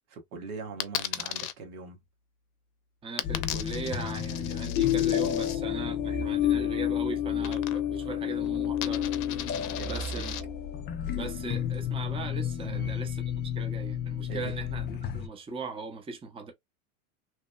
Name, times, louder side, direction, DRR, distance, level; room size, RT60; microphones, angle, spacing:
voice 1, 0.1-2.0 9.7-10.2 12.6-12.9 14.3-14.6, right 4 dB, 85° right, 1.1 m, -41 dB
Coin (dropping), 0.8-1.5 3.2-5.6 7.4-8.1 8.3-10.4, left 12 dB, 70° left, 0.6 m, -37 dB
voice 2, 3.0-9.1 9.8-10.4 11.1-16.5, right 4 dB, 15° right, 0.6 m, -39 dB
sound 1, 3.2-15.3, left 10 dB, 25° left, 0.3 m, -30 dB
3.0 x 2.0 x 2.2 m
hypercardioid pair, 100°, 43 cm